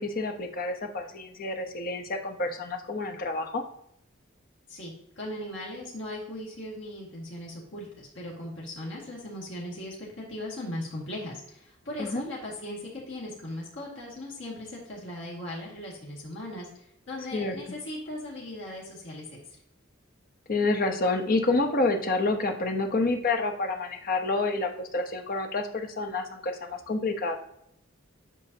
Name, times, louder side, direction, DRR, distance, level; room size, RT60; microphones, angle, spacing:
voice 1, 0.0-3.6 12.0-12.2 17.3-17.6 20.5-27.3, left 3 dB, 45° left, 4 dB, 0.9 m, -28 dB
voice 2, 4.7-16.7 17.1-19.2, left 1 dB, 65° left, -4 dB, 2.0 m, -38 dB
8.4 x 5.4 x 2.8 m, 0.75 s
head